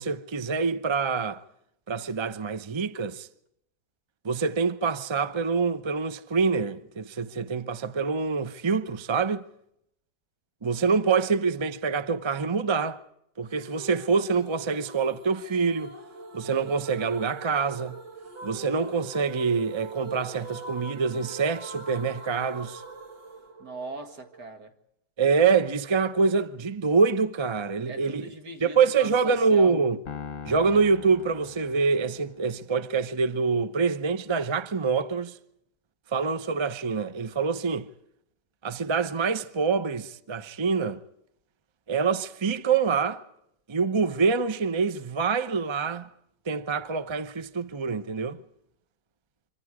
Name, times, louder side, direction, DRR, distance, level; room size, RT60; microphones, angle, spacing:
voice 1, 0.0-1.4 1.9-3.3 4.2-9.4 10.6-13.0 13.4-15.9 16.3-18.0 18.4-22.8 25.2-28.3 28.6-30.0 30.5-35.3 36.1-37.9 38.6-41.0 41.9-43.2 43.7-46.1 46.5-48.4, right 5 dB, 30° right, 0.5 m, -25 dB
sound 1, 13.5-24.5, right 3 dB, 85° right, 2.7 m, -42 dB
voice 2, 23.6-24.7 27.8-29.7, right 2 dB, 70° right, 2.6 m, -40 dB
Piano, 30.1-32.5, left 7 dB, 55° left, 1.5 m, -41 dB
26.0 x 25.5 x 4.9 m
omnidirectional pair, 1.8 m